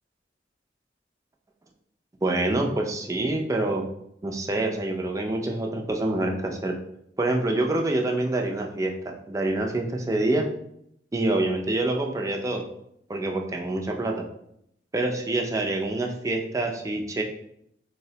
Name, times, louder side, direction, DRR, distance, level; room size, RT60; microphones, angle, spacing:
voice 1, 2.2-3.8 4.2-6.7 7.2-10.5 11.1-12.6 13.1-14.3 14.9-17.2, right 2 dB, 20° right, 2 dB, 0.3 m, -26 dB
3.9 x 2.0 x 2.7 m, 0.74 s
head